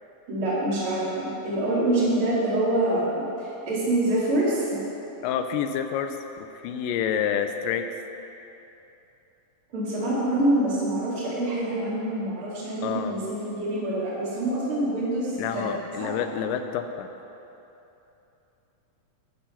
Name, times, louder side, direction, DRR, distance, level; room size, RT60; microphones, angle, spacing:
voice 1, 0.3-4.8 9.7-16.1, right 1 dB, 40° right, -9 dB, 3.2 m, -26 dB
voice 2, 5.2-7.8 12.8-13.2 15.4-17.1, left 8 dB, 80° left, 7 dB, 2.2 m, -28 dB
12.0 x 6.2 x 5.8 m, 3.0 s
omnidirectional pair, 4.0 m